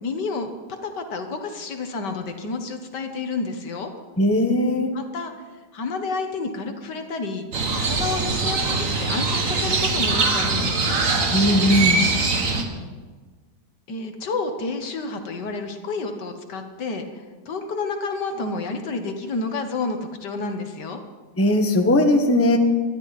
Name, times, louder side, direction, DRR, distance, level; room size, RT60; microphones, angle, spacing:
voice 1, 0.0-3.9 4.9-5.3 5.7-7.5 7.8-11.0 13.9-21.0, left 3 dB, 65° left, 6 dB, 1.9 m, -30 dB
voice 2, 4.2-4.9 11.3-12.0 21.4-22.6, left 1 dB, 10° left, 3 dB, 1.0 m, -19 dB
Crow, 7.5-12.6, right 3 dB, 45° right, 1.9 m, -22 dB
21.0 x 13.0 x 4.2 m, 1.4 s
omnidirectional pair, 2.0 m